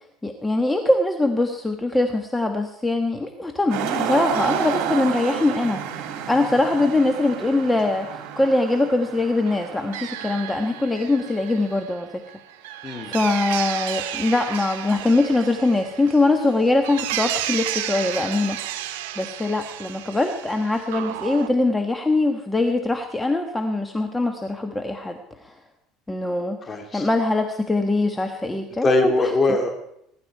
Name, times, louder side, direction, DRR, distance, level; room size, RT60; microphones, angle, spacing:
voice 1, 0.2-12.2 13.0-18.6 19.2-25.5 26.1-29.3, left 2 dB, 10° left, 5 dB, 1.3 m, -22 dB
sound 1, 3.7-10.8 11.4-11.7, right 8 dB, 65° right, 2.7 m, -30 dB
sound 2, 4.3-6.3 9.4-21.5, right 13 dB, 85° right, 0.9 m, -33 dB
voice 2, 26.7-27.1 28.8-29.9, left 2 dB, 25° left, 4 dB, 2.7 m, -21 dB
21.0 x 11.5 x 4.7 m, 0.75 s
supercardioid pair, 105°, 0 cm